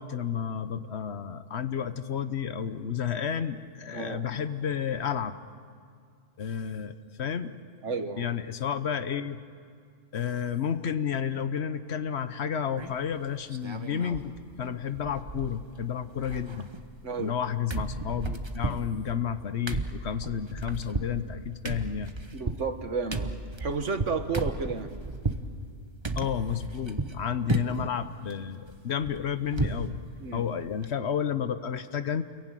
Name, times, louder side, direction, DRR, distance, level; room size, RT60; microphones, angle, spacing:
voice 1, 0.0-5.4 6.4-7.5 8.2-9.4 10.1-16.7 17.2-22.1 26.2-30.0 30.3-32.2, left 8 dB, 65° left, 12 dB, 1.2 m, -31 dB
voice 2, 3.9-4.2 7.8-8.3 17.0-17.3 22.3-23.3 23.6-24.9 30.2-30.4, right 4 dB, 80° right, 8 dB, 1.7 m, -31 dB
sound 1, 12.8-13.1 13.5-14.3 14.6-14.7 15.0-15.8 16.1-17.4 17.7-25.5 26.0-27.2 27.5-27.9 28.3-29.9 30.2-30.3 30.7-30.9, right 3 dB, 25° right, 1.0 m, -34 dB
29.5 x 22.0 x 9.2 m, 2.2 s
omnidirectional pair, 1.2 m